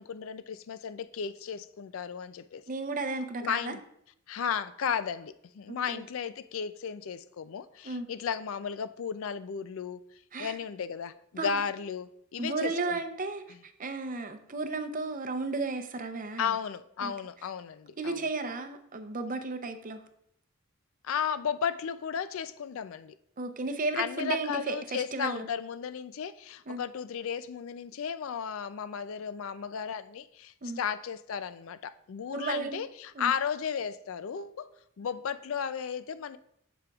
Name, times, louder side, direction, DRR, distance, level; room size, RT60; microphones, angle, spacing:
voice 1, 0.0-2.6 3.4-3.8 4.3-10.0 10.4-13.0 16.4-18.2 21.0-23.1 24.0-34.7 35.0-36.4, left 7 dB, 65° left, 13 dB, 0.4 m, -34 dB
voice 2, 2.7-3.7 5.7-6.0 7.8-8.1 10.3-10.6 11.4-11.5 12.4-16.5 17.0-17.1 18.0-20.0 23.4-25.5 26.7-26.8 30.6-30.8 32.3-32.8 33.2-33.3, right 3 dB, 40° right, 8 dB, 0.6 m, -34 dB
14.0 x 5.1 x 2.4 m, 0.73 s
head